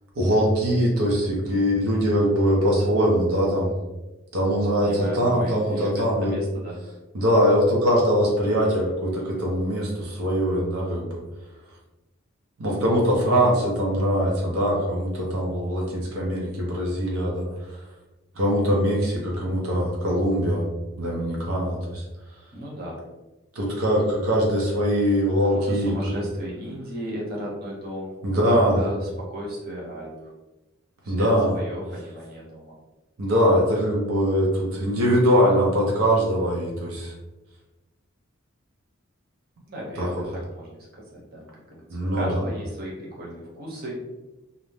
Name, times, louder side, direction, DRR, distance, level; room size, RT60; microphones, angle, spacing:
voice 1, 0.2-3.7 4.3-6.3 7.1-11.2 12.6-17.5 18.4-20.6 21.0-22.0 23.6-26.0 28.2-28.8 31.1-31.5 33.2-37.1 40.0-40.1 41.9-42.4, equal, 90° right, -2 dB, 0.6 m, -22 dB
voice 2, 4.5-6.8 22.5-23.0 25.4-30.3 31.0-32.7 39.7-44.0, equal, 45° right, -4 dB, 0.8 m, -35 dB
2.5 x 2.1 x 3.1 m, 1.1 s
head